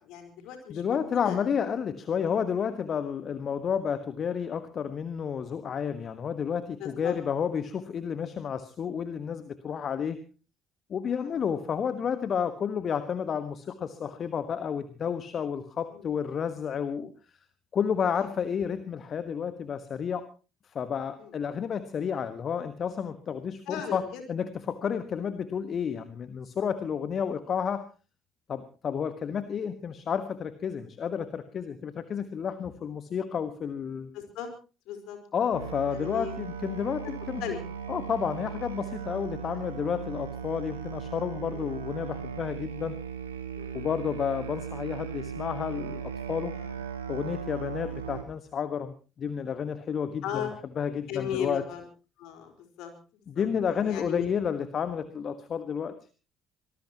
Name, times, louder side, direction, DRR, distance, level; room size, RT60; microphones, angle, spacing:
voice 1, 0.0-1.4 6.8-7.2 11.2-11.4 15.9-16.1 18.2-18.3 21.2-21.3 23.7-24.2 29.4-29.5 34.1-34.5 34.9-35.2 35.9-36.4 37.4-37.6 41.5-41.7 43.5-43.8 46.5-46.7 50.2-50.6 51.1-51.8 52.2-54.3, left 9 dB, 60° left, 5 dB, 4.5 m, -37 dB
voice 2, 0.7-10.2 10.9-17.1 17.7-20.3 20.7-27.9 28.5-34.1 35.3-37.4 37.9-43.0 43.7-46.5 47.1-50.5 50.8-51.6 53.3-55.9, left 7 dB, 45° left, 12 dB, 1.4 m, -31 dB
Musical instrument, 35.5-48.2, right 7 dB, 80° right, 2.1 m, -37 dB
25.0 x 19.5 x 3.0 m, 0.34 s
figure-of-eight pair, 50°, 0 cm